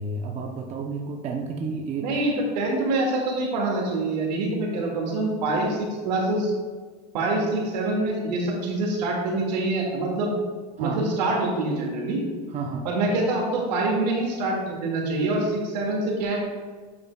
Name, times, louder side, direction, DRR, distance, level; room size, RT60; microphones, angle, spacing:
voice 1, 0.0-2.1 10.8-11.0 12.5-12.9, right 4 dB, 30° right, 1 dB, 0.7 m, -31 dB
voice 2, 2.0-6.5 7.1-10.3 10.8-12.2 12.8-16.4, right 2 dB, 80° right, -1 dB, 2.1 m, -25 dB
8.7 x 6.7 x 2.3 m, 1.5 s
supercardioid pair, 125°, 21 cm